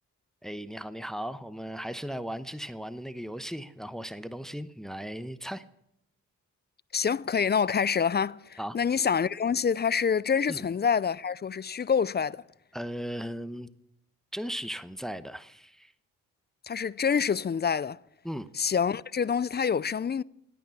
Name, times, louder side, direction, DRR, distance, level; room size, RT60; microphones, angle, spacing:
voice 1, 0.4-5.6 8.6-8.8 10.5-10.7 12.7-13.7 14.3-15.9 18.2-18.5, equal, ahead, 0.9 m, -37 dB
voice 2, 6.9-12.4 16.7-18.0 18.6-20.2, left 6 dB, 30° left, 0.4 m, -26 dB
16.5 x 9.3 x 7.1 m
supercardioid pair, 50°, 34 cm